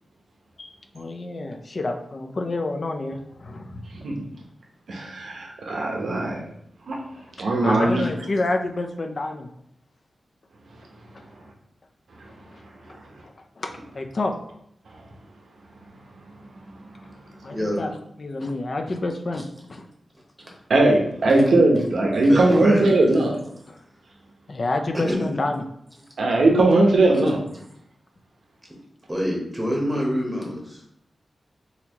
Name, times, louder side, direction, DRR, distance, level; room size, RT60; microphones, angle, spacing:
voice 1, 0.6-3.8 7.1-7.2 7.6-9.5 11.1-11.2 12.5-12.6 13.6-14.3 17.4-17.9 18.2-19.4 19.7-19.9 23.7-23.8 24.5-25.7, left 2 dB, 45° left, 5 dB, 0.4 m, -28 dB
voice 2, 4.9-6.4 6.9-7.0 7.4-8.1 20.7-23.3 26.2-27.4, right 2 dB, 85° right, -1 dB, 0.8 m, -19 dB
voice 3, 17.5-17.8 21.3-21.4 22.1-23.0 24.9-25.3 29.1-30.9, equal, 5° right, -2 dB, 0.9 m, -26 dB
4.0 x 2.7 x 2.8 m, 0.73 s
wide cardioid pair, 135°, 0 cm